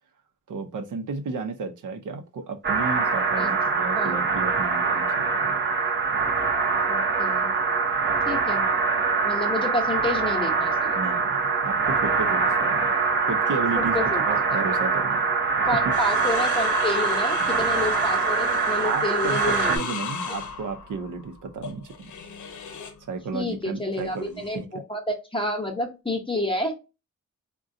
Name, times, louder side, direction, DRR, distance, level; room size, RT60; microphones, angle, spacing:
voice 1, 0.5-5.6 10.9-11.4 11.6-12.9 13.3-14.0 14.2-15.2 17.4-17.7 18.8-21.9 23.1-24.7, right 4 dB, 90° right, 0.7 m, -33 dB
sound 1, 2.6-19.8, right 4 dB, 40° right, 0.7 m, -24 dB
voice 2, 6.9-7.5 8.3-8.6 9.2-10.9 13.7-14.2 14.5-14.6 15.6-19.8 23.3-26.7, left 1 dB, 15° left, 0.7 m, -29 dB
sound 2, 15.9-23.0 24.0-24.6, left 5 dB, 75° left, 0.6 m, -36 dB
3.7 x 2.2 x 2.5 m
wide cardioid pair, 120°, 30 cm